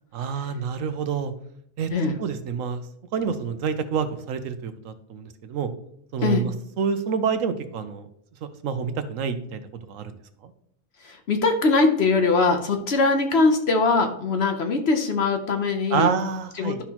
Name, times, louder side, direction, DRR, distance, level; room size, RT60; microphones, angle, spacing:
voice 1, 0.1-1.3 1.8-1.9 2.2-2.8 3.1-5.7 6.1-6.5 6.8-8.1 8.4-10.2 10.4-10.5 15.9-16.8, right 6 dB, 75° right, 10 dB, 1.1 m, -27 dB
voice 2, 11.0-16.1 16.6-16.8, left 3 dB, 55° left, 6 dB, 1.0 m, -22 dB
11.0 x 5.8 x 2.9 m, 0.67 s
omnidirectional pair, 1.4 m